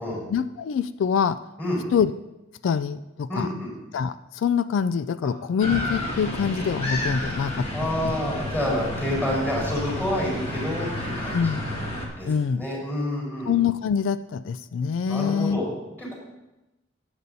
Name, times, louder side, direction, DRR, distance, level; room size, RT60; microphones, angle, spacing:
voice 1, 0.3-1.4 1.9-2.1 2.6-3.5 3.9-8.2 11.3-11.7 12.3-12.6 13.5-15.6, left 7 dB, 85° left, 14 dB, 0.3 m, -25 dB
voice 2, 3.3-3.7 7.7-11.4 12.2-13.5 15.1-15.7 16.0-16.2, left 1 dB, 10° left, -4 dB, 4.3 m, -28 dB
sound 1, 5.6-12.1, left 1 dB, 30° left, 1.5 m, -30 dB
18.0 x 7.8 x 2.7 m, 0.97 s
head